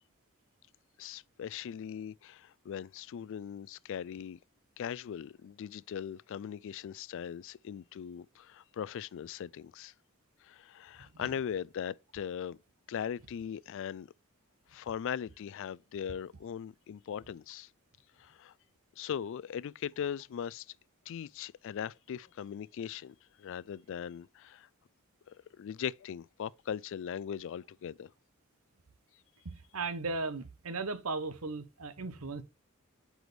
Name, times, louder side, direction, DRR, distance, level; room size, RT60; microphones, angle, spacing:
voice 1, 1.0-4.4 4.8-9.9 10.4-12.6 12.9-14.1 14.7-17.7 18.2-18.5 19.0-20.6 21.1-24.7 25.3-28.1, left 8 dB, 60° left, 0.3 m, -39 dB
voice 2, 29.4-32.4, right 3 dB, 85° right, 0.9 m, -37 dB
7.9 x 4.8 x 3.3 m
head